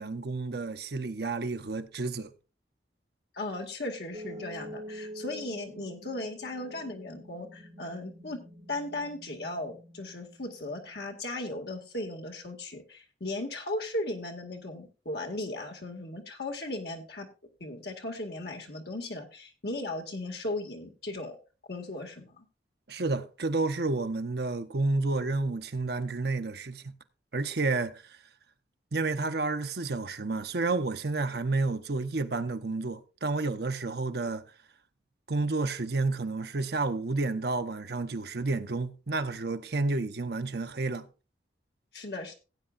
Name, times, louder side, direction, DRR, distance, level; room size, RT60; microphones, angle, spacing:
voice 1, 0.0-2.3 22.9-26.9 27.3-28.0 28.9-34.4 35.3-41.0, right 3 dB, 60° right, 0.8 m, -30 dB
voice 2, 3.3-8.4 8.7-17.3 17.6-21.4 21.7-22.5 41.9-42.4, left 2 dB, 60° left, 2.0 m, -37 dB
sound 1, 4.1-11.1, equal, 40° right, 2.1 m, -46 dB
17.0 x 8.8 x 2.5 m
head